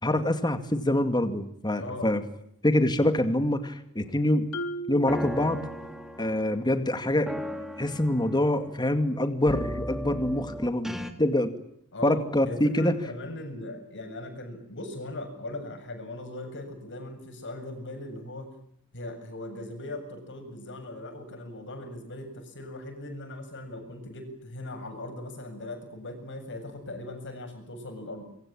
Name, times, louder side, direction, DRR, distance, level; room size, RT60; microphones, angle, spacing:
voice 1, 0.0-2.2 2.6-4.5 4.9-5.7 6.2-7.3 7.8-10.9 11.2-11.5 12.0-12.9, left 1 dB, 20° left, 8 dB, 2.2 m, -25 dB
voice 2, 1.8-2.1 11.9-12.2 12.5-18.5 18.9-28.3, left 1 dB, 55° left, 7 dB, 7.6 m, -39 dB
Marimba xylophone, 4.5-6.3, right 1 dB, 75° left, 3.8 m, -38 dB
sound 1, 5.1-6.7 7.3-8.8 9.4-11.1, equal, ahead, 2.7 m, -37 dB
26.5 x 24.5 x 8.8 m, 0.71 s
head